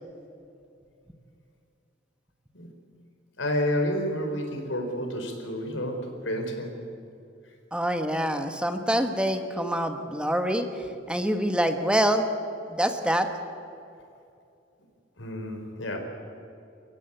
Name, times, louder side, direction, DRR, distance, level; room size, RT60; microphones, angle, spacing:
voice 1, 3.4-6.7 15.2-16.0, equal, 90° left, 4 dB, 4.4 m, -30 dB
voice 2, 7.7-12.2 12.7-13.3, right 1 dB, 5° right, 6 dB, 1.3 m, -26 dB
29.5 x 15.0 x 9.0 m, 2.5 s
head